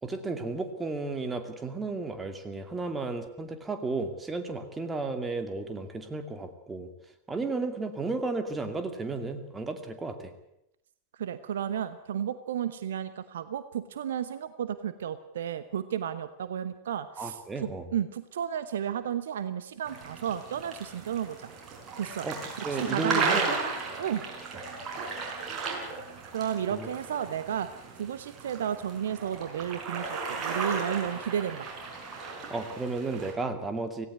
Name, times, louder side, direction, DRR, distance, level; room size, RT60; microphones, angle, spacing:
voice 1, 0.0-6.9 7.3-10.3 17.2-17.9 22.2-23.4 24.5-24.6 26.7-26.9 32.5-34.1, right 3 dB, 15° right, 7 dB, 2.4 m, -33 dB
voice 2, 11.2-21.5 22.0-22.3 22.7-23.6 24.0-24.2 26.3-27.7 28.0-31.7, right 9 dB, 60° right, 13 dB, 0.9 m, -33 dB
sound 1, 19.8-33.3, right 4 dB, 30° right, 5.7 m, -35 dB
17.5 x 16.5 x 9.5 m, 0.82 s
figure-of-eight pair, 90°, 0 cm